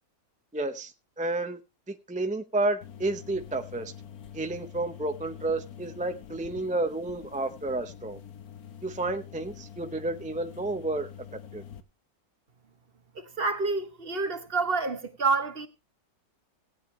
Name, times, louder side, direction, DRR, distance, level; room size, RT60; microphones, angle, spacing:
voice 1, 0.5-0.9 1.2-1.6 1.9-3.9 4.3-8.2 8.8-11.1 11.5-11.6, right 2 dB, 10° right, 0.6 m, -31 dB
sound 1, 2.8-11.8, left 9 dB, 85° left, 1.5 m, -46 dB
voice 2, 13.1-15.7, right 4 dB, 45° right, 1.2 m, -28 dB
17.5 x 8.9 x 3.2 m
omnidirectional pair, 1.5 m